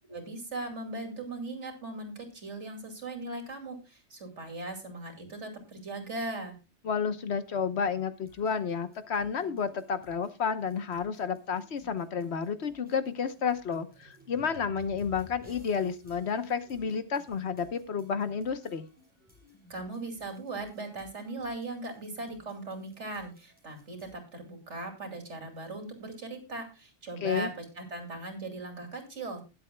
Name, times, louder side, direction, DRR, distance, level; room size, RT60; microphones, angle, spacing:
voice 1, 0.1-6.5 19.7-29.4, right 2 dB, 85° right, 5 dB, 2.9 m, -39 dB
voice 2, 6.8-18.9 27.2-27.5, left 6 dB, 70° left, 11 dB, 1.3 m, -31 dB
sound 1, 8.1-24.1, left 2 dB, 10° right, 6.5 m, -57 dB
21.0 x 7.6 x 2.2 m, 0.29 s
omnidirectional pair, 1.2 m